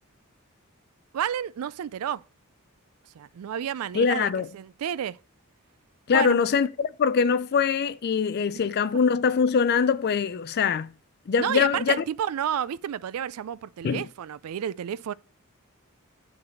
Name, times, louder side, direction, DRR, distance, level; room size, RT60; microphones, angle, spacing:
voice 1, 1.1-2.2 3.1-5.2 6.1-6.4 11.4-15.1, right 9 dB, 85° right, 0.4 m, -31 dB
voice 2, 3.9-4.5 6.1-10.9 11.3-12.0 13.8-14.0, left 6 dB, 50° left, 0.4 m, -23 dB
8.8 x 3.9 x 6.4 m
head